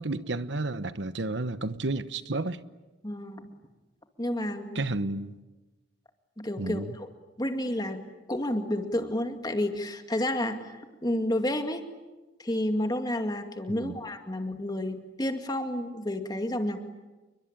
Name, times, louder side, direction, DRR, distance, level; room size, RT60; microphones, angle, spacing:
voice 1, 0.0-2.6 4.7-5.4 6.6-6.9 13.7-14.0, right 2 dB, 70° right, 1.0 m, -31 dB
voice 2, 3.0-3.5 4.2-4.8 6.4-7.1 7.4-8.0 8.3-11.8 12.4-16.8, left 1 dB, 20° left, 2.2 m, -30 dB
29.5 x 23.0 x 8.8 m
head